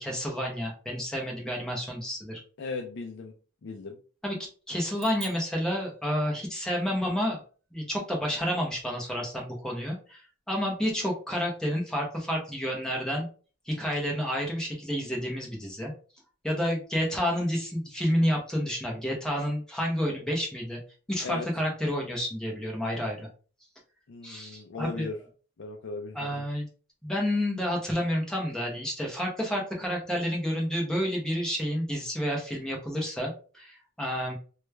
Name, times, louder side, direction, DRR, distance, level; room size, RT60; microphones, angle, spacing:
voice 1, 0.0-2.4 4.2-4.4 4.7-7.4 7.7-10.2 10.5-13.3 13.7-15.9 16.4-20.8 21.1-23.3 24.2-25.1 26.1-26.7 27.0-34.3, equal, 5° left, -2 dB, 0.8 m, -30 dB
voice 2, 2.6-3.3 3.6-4.0 21.2-21.5 24.1-25.2 25.6-26.4, left 3 dB, 55° left, 2 dB, 0.4 m, -37 dB
sound 1, 5.0-6.6, right 7 dB, 65° right, 0.8 m, -48 dB
3.1 x 2.3 x 3.2 m, 0.38 s
head